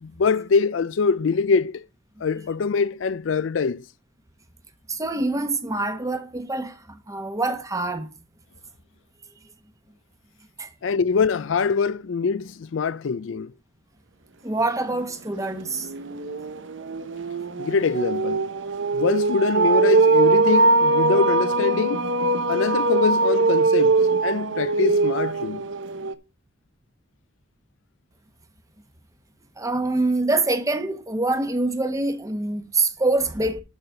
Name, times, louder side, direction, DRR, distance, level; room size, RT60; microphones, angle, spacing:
voice 1, 0.0-1.8 2.2-3.8 10.8-13.5 17.6-18.5 18.9-22.1 22.5-24.0 24.2-25.6, left 5 dB, 80° left, 0.4 m, -24 dB
voice 2, 4.9-8.1 10.6-10.7 14.4-15.9 29.6-33.6, right 2 dB, 15° right, 1.1 m, -25 dB
sound 1, 14.9-15.0 15.4-26.1, right 3 dB, 75° right, 0.8 m, -21 dB
12.0 x 4.1 x 5.7 m
head